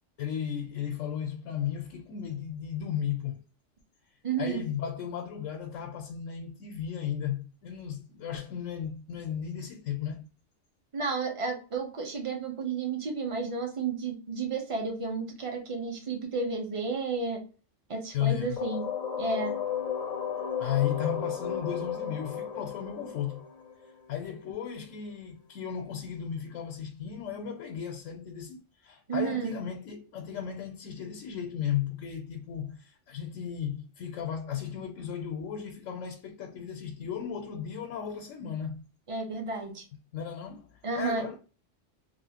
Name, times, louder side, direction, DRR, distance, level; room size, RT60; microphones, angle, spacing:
voice 1, 0.2-3.4 4.4-10.2 18.1-18.7 20.6-23.4 24.1-38.8 40.1-41.4, left 9 dB, 85° left, 1.0 m, -35 dB
voice 2, 4.2-4.6 10.9-17.4 17.9-18.8 19.2-19.5 29.1-29.5 39.1-39.8 40.8-41.3, right 4 dB, 30° right, 0.8 m, -32 dB
sound 1, 18.6-24.3, left 8 dB, 45° left, 0.6 m, -34 dB
3.0 x 2.6 x 2.8 m
omnidirectional pair, 1.3 m